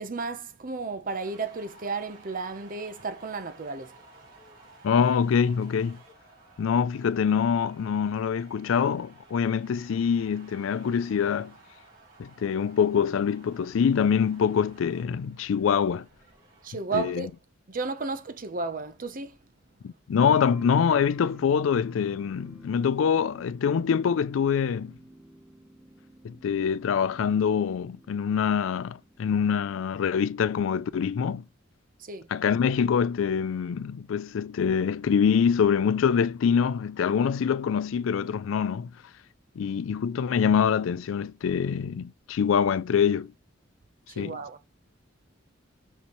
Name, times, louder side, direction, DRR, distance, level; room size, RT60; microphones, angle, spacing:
voice 1, 0.0-4.0 16.6-17.3 17.7-19.4 32.0-32.3 44.1-44.6, right 4 dB, 45° right, 0.8 m, -33 dB
sound 1, 1.1-16.8, right 3 dB, 75° right, 3.4 m, -55 dB
voice 2, 4.8-6.0 6.6-11.5 12.2-16.1 16.9-17.3 19.8-24.9 26.2-31.4 32.3-38.9 39.6-43.3 44.2-44.4, left 7 dB, 80° left, 0.4 m, -25 dB
sound 2, 20.2-29.7, right 1 dB, 5° right, 0.9 m, -51 dB
5.7 x 5.5 x 3.1 m
head